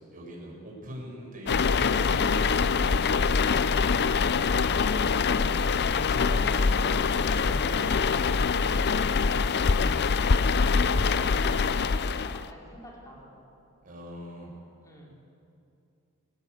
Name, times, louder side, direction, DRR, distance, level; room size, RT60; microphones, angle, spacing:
voice 1, 0.0-3.0 4.8-5.6 5.9-8.1 13.8-14.6, right 1 dB, 40° right, -2 dB, 6.2 m, -43 dB
sound 1, 1.5-12.5, left 5 dB, 50° left, 0.6 m, -24 dB
voice 2, 10.5-13.4 14.8-15.1, equal, 15° left, -3 dB, 4.3 m, -47 dB
21.0 x 18.5 x 8.3 m, 2.7 s
head